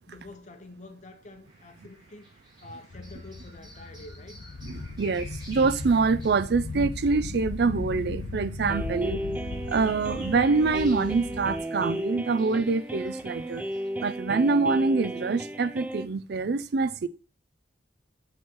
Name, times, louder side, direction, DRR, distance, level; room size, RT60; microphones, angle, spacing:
voice 1, 0.1-2.3 2.6-4.4 8.9-9.3, left 2 dB, 40° left, 1.1 m, -47 dB
sound 1, 1.4-13.9, right 1 dB, 25° right, 2.9 m, -52 dB
sound 2, 2.9-11.6, left 3 dB, 65° left, 0.6 m, -37 dB
voice 2, 4.6-9.2 9.7-13.6 14.0-17.1, right 4 dB, 65° right, 0.5 m, -25 dB
sound 3, 8.7-16.1, right 1 dB, 10° right, 0.4 m, -34 dB
7.5 x 5.1 x 3.8 m
head